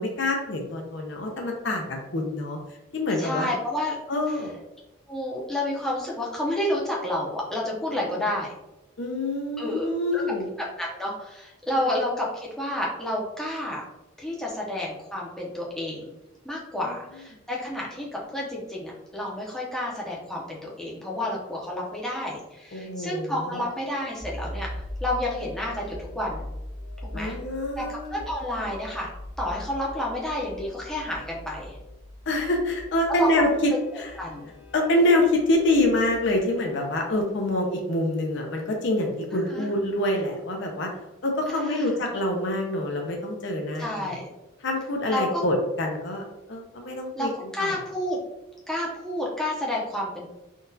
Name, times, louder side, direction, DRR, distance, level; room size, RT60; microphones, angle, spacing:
voice 1, 0.0-2.6 2.9-3.5 4.1-4.6 7.9-8.0 9.0-10.5 11.8-11.9 16.9-17.0 22.7-23.6 27.1-28.3 32.3-34.1 34.7-40.9 41.2-44.2 44.6-46.2 46.5-47.7, left 1 dB, 60° left, 2 dB, 0.6 m, -26 dB
voice 2, 3.2-4.0 5.1-8.5 9.6-10.2 10.8-13.8 14.2-16.1 16.4-24.7 25.0-26.4 27.1-27.4 27.8-27.9 28.1-29.1 29.4-31.8 33.1-33.3 34.2-34.5 39.3-39.7 41.5-42.0 43.8-44.3 45.1-45.4 47.1-48.2 48.7-50.3, left 1 dB, 5° left, -4 dB, 0.6 m, -30 dB
sound 1, 24.2-36.4, left 1 dB, 65° right, 0.7 m, -40 dB
3.8 x 2.3 x 2.6 m, 0.95 s
head